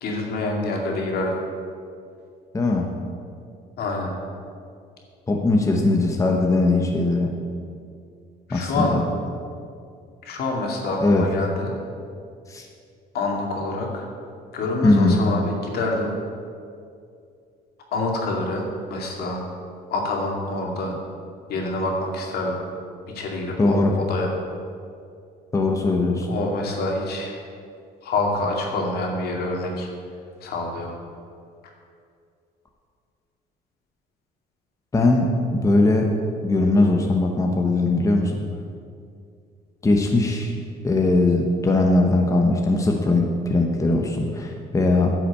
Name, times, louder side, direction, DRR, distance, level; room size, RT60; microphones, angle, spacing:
voice 1, 0.0-1.4 3.8-4.1 8.5-9.0 10.2-11.7 13.1-14.1 14.5-16.2 17.9-19.4 19.9-21.0 21.5-22.6 23.1-24.3 26.3-27.4 28.0-29.9 30.4-30.9, left 2 dB, 70° left, 0 dB, 2.4 m, -26 dB
voice 2, 2.5-2.9 5.3-7.3 8.5-9.0 11.0-11.3 12.5-12.7 14.8-15.2 23.6-24.0 25.5-26.3 34.9-36.1 36.4-38.4 39.8-40.5 40.8-45.1, left 2 dB, 20° left, 1 dB, 1.1 m, -20 dB
10.0 x 6.0 x 8.3 m, 2.3 s
cardioid pair, 110°, 17 cm